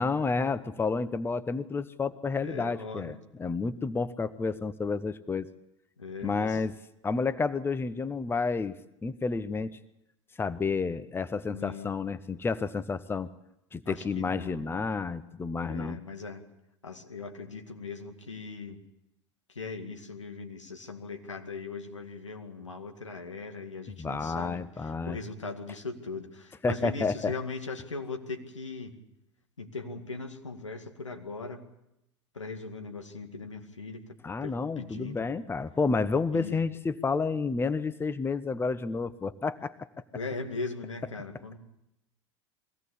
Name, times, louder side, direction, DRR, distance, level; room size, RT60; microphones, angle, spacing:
voice 1, 0.0-5.5 6.2-6.7 7.0-9.8 10.4-13.3 13.7-16.0 24.0-25.2 26.6-27.3 34.2-39.9, left 4 dB, 15° left, 14 dB, 0.9 m, -30 dB
voice 2, 2.4-3.2 6.0-6.6 11.5-12.0 13.9-14.6 15.6-16.4 16.8-18.8 19.5-24.6 25.1-28.9 29.6-31.6 32.3-34.0 34.4-35.2 36.3-36.6 40.1-41.6, left 4 dB, 85° left, 3 dB, 2.2 m, -39 dB
22.5 x 17.0 x 8.4 m, 0.85 s
figure-of-eight pair, 80°, 15 cm